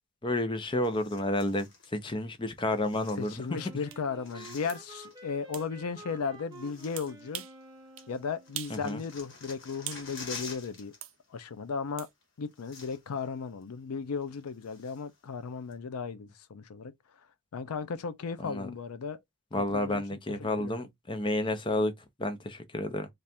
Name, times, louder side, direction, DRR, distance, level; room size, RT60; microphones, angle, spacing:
voice 1, 0.2-3.6 8.7-9.0 18.4-18.7 19.5-21.9 22.2-23.1, left 1 dB, 20° left, 0.6 m, -31 dB
sound 1, 0.8-1.9 2.7-3.8 4.0-5.3 6.1-6.2 6.5-7.7 8.0-11.0 11.2-11.5 12.2-12.3 12.5-13.3 13.6-13.7 14.2-15.2 15.7-15.8, left 4 dB, 55° left, 1.4 m, -48 dB
voice 2, 3.2-7.4 8.1-10.9 11.3-12.1 12.4-16.9 17.5-19.2 19.7-20.0 20.4-20.9, left 5 dB, 90° left, 0.5 m, -36 dB
Wind instrument woodwind instrument, 3.5-8.6, right 2 dB, 20° right, 0.7 m, -50 dB
sound 2, 3.9-4.0 4.7-4.8 5.5-5.7 7.0-7.6 8.0-8.1 8.5-8.8 9.2-10.1 11.0-11.2 12.0-12.1, right 12 dB, 65° right, 0.6 m, -41 dB
3.4 x 2.4 x 4.2 m
head